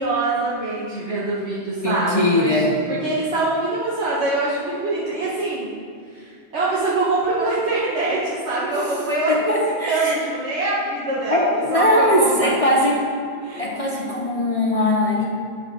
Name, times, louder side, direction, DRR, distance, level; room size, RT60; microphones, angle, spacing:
voice 1, 0.0-5.7 6.1-11.5 11.7-12.8 13.4-13.6, right 2 dB, 65° right, -8 dB, 1.8 m, -24 dB
voice 2, 1.8-2.8 9.3-10.2 11.3-13.0 13.6-15.3, left 1 dB, 30° left, -3 dB, 0.9 m, -20 dB
9.5 x 6.0 x 6.3 m, 2.3 s
omnidirectional pair, 1.2 m